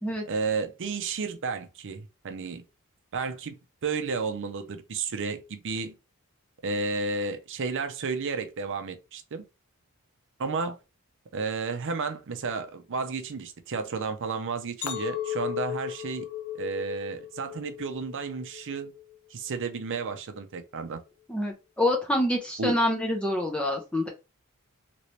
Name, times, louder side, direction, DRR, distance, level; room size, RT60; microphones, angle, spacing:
voice 1, 0.3-2.6 3.1-3.5 3.8-5.9 6.6-9.4 10.4-10.8 11.3-16.3 16.5-18.9 19.3-21.0 22.6-22.8, right 4 dB, 60° right, 0.5 m, -32 dB
Chink clink, 14.8-19.2 19.6-20.1, left 11 dB, 80° left, 0.6 m, -36 dB
voice 2, 21.3-24.1, left 1 dB, 5° left, 0.5 m, -26 dB
3.0 x 2.8 x 3.1 m
head